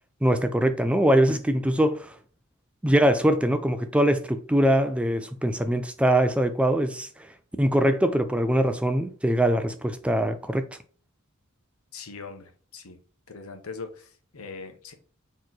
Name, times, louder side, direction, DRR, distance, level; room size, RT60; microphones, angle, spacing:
voice 1, 0.2-2.2 2.8-7.1 7.6-10.7, right 1 dB, 5° right, 0.3 m, -22 dB
voice 2, 11.9-13.0 13.3-14.9, left 4 dB, 85° left, 0.9 m, -41 dB
4.3 x 3.0 x 3.9 m
head